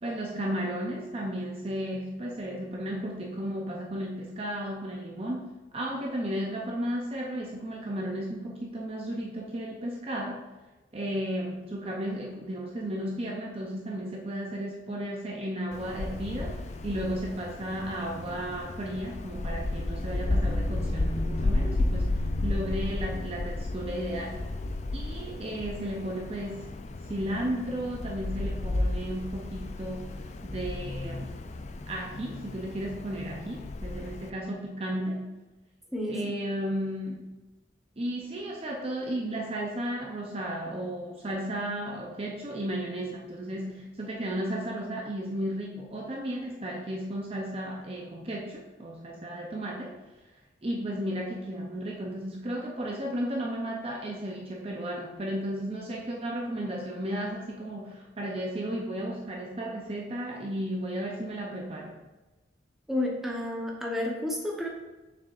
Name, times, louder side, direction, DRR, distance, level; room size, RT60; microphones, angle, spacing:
voice 1, 0.0-10.4 10.9-24.5 24.9-26.7 27.1-30.1 30.4-31.3 31.9-35.3 36.1-37.3 38.0-50.0 50.6-62.0, right 1 dB, 30° right, -1 dB, 0.6 m, -34 dB
Wind, 15.7-34.3, left 2 dB, 40° left, 0.4 m, -33 dB
voice 2, 35.9-36.3 62.9-64.7, left 1 dB, ahead, -2 dB, 0.9 m, -31 dB
6.8 x 6.2 x 2.5 m, 1.1 s
head